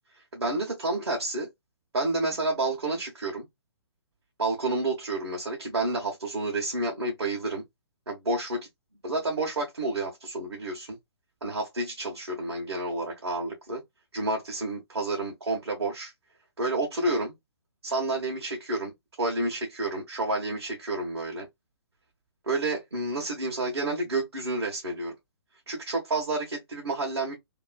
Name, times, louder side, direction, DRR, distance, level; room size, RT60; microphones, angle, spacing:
voice 1, 0.3-1.5 1.9-3.4 4.4-7.6 8.1-8.7 9.0-11.0 11.4-13.8 14.1-16.1 16.6-17.3 17.8-18.9 19.2-21.5 22.4-25.1 25.7-27.3, right 2 dB, 70° right, 1.2 m, -30 dB
2.9 x 2.6 x 2.2 m
figure-of-eight pair, 130°, 14 cm